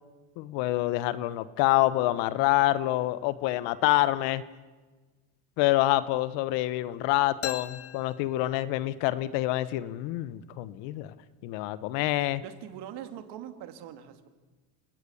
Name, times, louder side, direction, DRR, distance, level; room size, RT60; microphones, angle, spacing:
voice 1, 0.4-4.4 5.6-11.1 11.4-12.4, left 16 dB, 75° left, 16 dB, 1.3 m, -26 dB
sound 1, 7.4-9.1, left 10 dB, 35° left, 0.7 m, -39 dB
voice 2, 12.4-14.3, right 10 dB, 65° right, 8 dB, 2.5 m, -42 dB
29.5 x 19.0 x 7.2 m, 1.3 s
cardioid pair, 120°, 43 cm